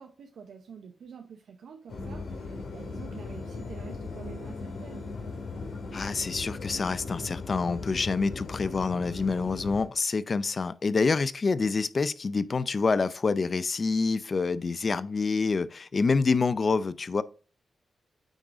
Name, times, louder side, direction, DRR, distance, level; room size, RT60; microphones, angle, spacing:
voice 1, 0.0-5.1, right 6 dB, 80° right, 0.7 m, -47 dB
sound 1, 1.9-9.9, left 3 dB, 75° left, 2.4 m, -38 dB
voice 2, 5.9-17.2, left 4 dB, 45° left, 0.5 m, -27 dB
9.0 x 3.8 x 3.6 m
cardioid pair, 70°, 0 cm